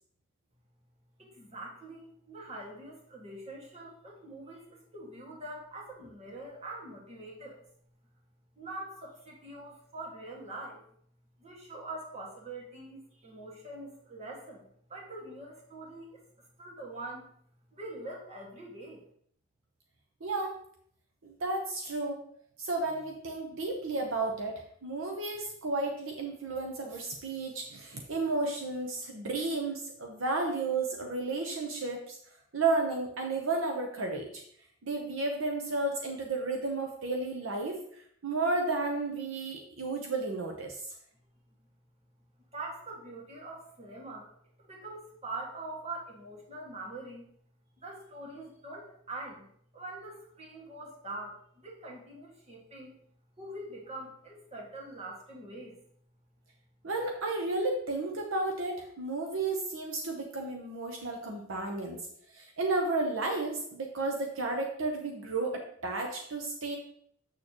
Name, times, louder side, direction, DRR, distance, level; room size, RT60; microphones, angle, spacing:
voice 1, 1.2-7.6 8.6-10.8 11.4-14.6 14.9-16.2 16.6-17.3 17.7-19.0 42.5-44.3 44.6-47.2 47.8-49.4 49.7-52.9 53.4-55.8, right 2 dB, 30° right, -2 dB, 1.8 m, -44 dB
voice 2, 20.2-20.6 21.2-22.2 22.6-32.2 32.5-34.4 34.8-40.8 56.8-62.0 62.3-66.8, right 3 dB, 70° right, 2 dB, 0.9 m, -32 dB
7.4 x 6.5 x 3.0 m, 0.64 s
head